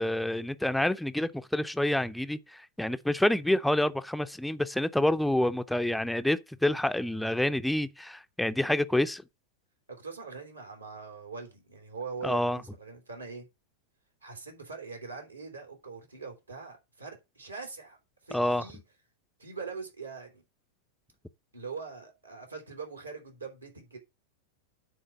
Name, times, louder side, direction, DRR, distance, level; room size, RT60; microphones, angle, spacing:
voice 1, 0.0-9.2 12.2-12.6 18.3-18.6, left 1 dB, 5° left, 0.6 m, -28 dB
voice 2, 9.9-13.5 14.2-18.0 18.2-18.8 19.4-20.4 21.5-24.0, right 5 dB, 85° right, 3.4 m, -42 dB
9.0 x 4.0 x 6.2 m
figure-of-eight pair, 95°, 0 cm